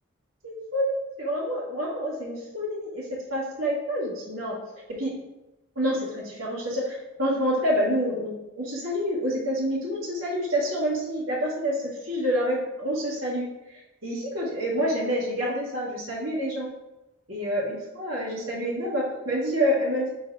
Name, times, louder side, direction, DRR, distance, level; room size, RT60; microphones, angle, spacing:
voice 1, 0.4-4.6 4.9-5.1 5.8-16.7 17.3-20.1, equal, 75° right, -10 dB, 2.2 m, -28 dB
6.3 x 3.3 x 4.9 m, 0.97 s
head